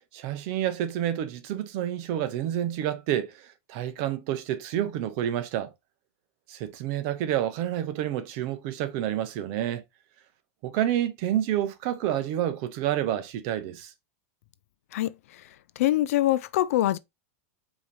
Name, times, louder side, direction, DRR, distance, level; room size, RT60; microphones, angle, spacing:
voice 1, 0.1-5.7 6.5-9.8 10.6-13.9, right 11 dB, 45° right, 0.8 m, -29 dB
voice 2, 15.8-17.0, left 14 dB, 70° left, 0.4 m, -23 dB
4.8 x 2.9 x 3.2 m
supercardioid pair, 145°, 8 cm